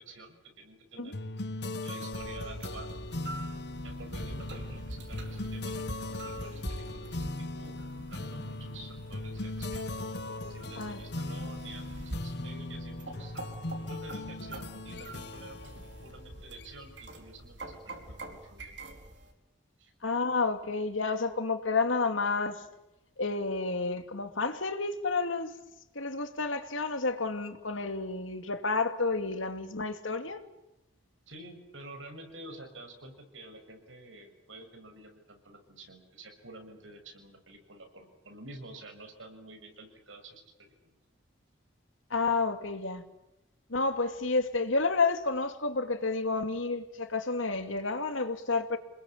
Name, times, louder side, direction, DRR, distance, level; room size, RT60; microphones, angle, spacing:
voice 1, 0.0-1.4 1.8-3.0 3.8-5.8 6.1-7.3 7.6-10.0 10.5-13.3 13.7-18.8 19.8-19.9 31.3-40.9, right 2 dB, 80° right, 6.7 m, -49 dB
sound 1, 1.1-17.0, left 2 dB, 55° left, 1.2 m, -39 dB
sound 2, 2.1-19.3, right 1 dB, 65° right, 4.5 m, -45 dB
voice 2, 20.0-22.6 23.2-25.5 25.9-30.4 42.1-43.0 43.7-48.8, left 3 dB, 85° left, 2.6 m, -30 dB
28.0 x 21.0 x 8.7 m
head